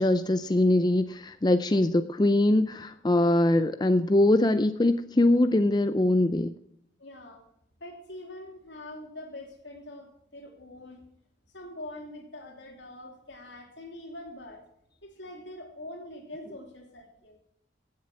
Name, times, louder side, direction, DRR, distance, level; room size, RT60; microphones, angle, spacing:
voice 1, 0.0-6.5, left 1 dB, 20° left, 0.4 m, -22 dB
voice 2, 7.0-7.4 7.8-11.0 11.5-14.6 15.0-17.4, left 1 dB, 80° left, 2.9 m, -44 dB
16.0 x 7.6 x 6.0 m
head